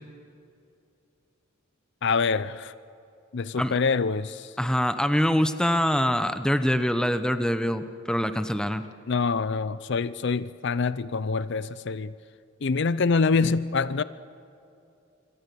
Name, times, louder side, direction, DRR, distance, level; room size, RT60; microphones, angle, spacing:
voice 1, 2.0-2.7 3.3-4.5 9.1-12.1 12.6-14.0, left 4 dB, 55° left, 0.5 m, -25 dB
voice 2, 4.6-8.8, equal, 5° left, 0.8 m, -24 dB
26.5 x 24.0 x 6.9 m
head